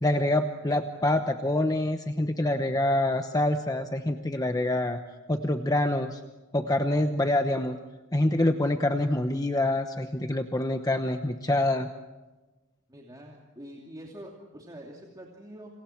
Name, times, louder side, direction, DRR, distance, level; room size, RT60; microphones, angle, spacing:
voice 1, 0.0-5.0 5.3-6.2 6.5-7.8 8.1-11.9, left 1 dB, 15° left, 6 dB, 0.9 m, -26 dB
voice 2, 12.9-15.7, right 1 dB, 20° right, -1 dB, 2.8 m, -45 dB
29.0 x 27.0 x 4.6 m, 1.2 s
head